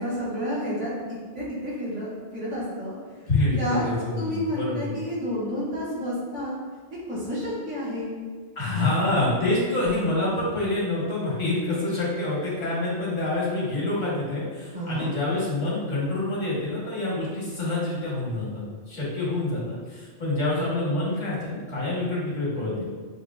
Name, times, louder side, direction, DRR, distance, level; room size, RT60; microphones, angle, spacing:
voice 1, 0.0-3.3 3.6-3.8 4.2-6.5 7.1-8.1 14.7-15.1, equal, 85° right, -9 dB, 1.7 m, -30 dB
voice 2, 3.3-5.0 8.5-22.9, left 2 dB, 90° left, -7 dB, 1.6 m, -27 dB
6.6 x 2.2 x 2.3 m, 1.5 s
omnidirectional pair, 1.2 m